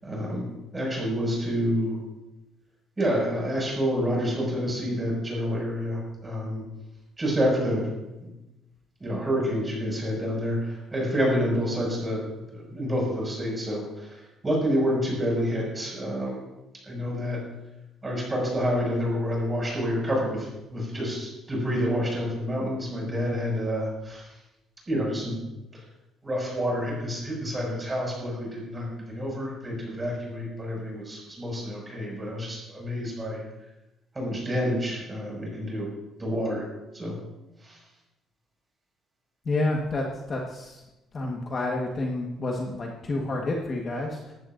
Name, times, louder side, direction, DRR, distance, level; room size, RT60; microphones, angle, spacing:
voice 1, 0.0-2.0 3.0-6.6 7.2-8.3 9.0-12.3 12.5-14.2 14.4-16.4 16.8-17.4 18.0-24.3 24.9-25.4 26.2-33.4 34.1-35.9 36.2-36.6 36.9-37.2 37.6-37.8, equal, 15° right, -2 dB, 5.9 m, -28 dB
voice 2, 39.4-40.8 41.1-44.3, left 2 dB, 30° left, -1 dB, 1.4 m, -29 dB
18.5 x 15.0 x 2.6 m, 0.99 s
cardioid pair, 170°, 0 cm